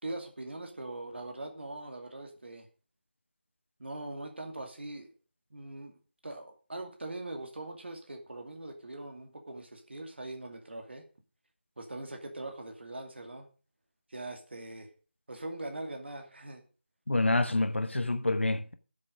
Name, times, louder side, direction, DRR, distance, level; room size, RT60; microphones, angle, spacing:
voice 1, 0.0-2.7 3.8-5.1 5.5-6.0 6.2-11.0 11.8-13.5 14.1-14.9 15.3-16.6, right 2 dB, 70° right, 2.5 m, -41 dB
voice 2, 17.1-18.7, left 2 dB, 90° left, 1.1 m, -27 dB
13.5 x 7.5 x 5.2 m
figure-of-eight pair, 165°, 6 cm